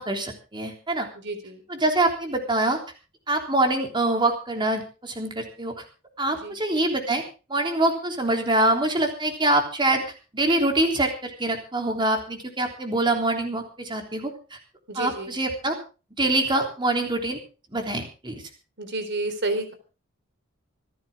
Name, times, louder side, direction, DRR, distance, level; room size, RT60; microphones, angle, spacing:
voice 1, 0.0-1.1 1.7-2.8 3.3-5.7 6.2-7.2 7.5-14.6 15.0-15.8 16.2-17.4 17.7-18.4, right 2 dB, 20° right, 3 dB, 3.5 m, -25 dB
voice 2, 1.1-1.6 6.4-6.6 14.9-15.3 18.8-19.7, right 2 dB, 60° right, 9 dB, 3.8 m, -30 dB
26.5 x 10.0 x 3.7 m, 0.35 s
head